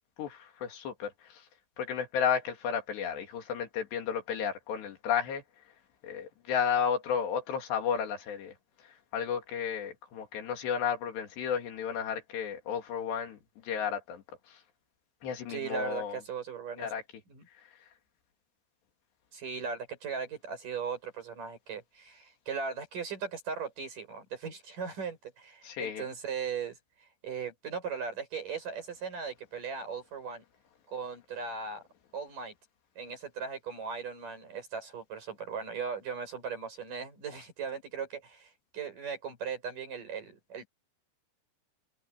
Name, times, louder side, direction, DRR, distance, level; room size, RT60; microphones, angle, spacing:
voice 1, 0.2-1.4 1.8-5.4 6.0-8.5 9.1-14.2 14.5-14.6 15.2-16.2 16.8-17.0 25.6-26.0, left 7 dB, 80° left, 4.9 m, -33 dB
voice 2, 15.5-16.9 17.3-17.5 19.3-30.4 30.9-31.8 32.1-32.5 33.0-40.7, right 6 dB, 50° right, 8.4 m, -38 dB
omnidirectional pair, 4.8 m